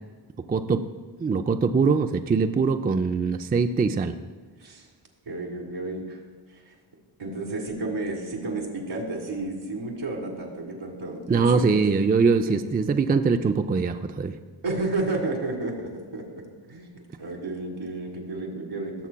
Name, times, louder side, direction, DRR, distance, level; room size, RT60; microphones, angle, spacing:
voice 1, 0.5-0.8 1.2-4.1 11.3-14.3, right 4 dB, 20° right, 7 dB, 0.4 m, -22 dB
voice 2, 5.3-6.2 6.5-6.7 7.2-11.7 12.5-12.6 14.6-16.9 17.2-18.9, right 2 dB, 80° right, 0 dB, 2.0 m, -32 dB
17.5 x 7.0 x 2.3 m, 1.5 s
cardioid pair, 55°, 49 cm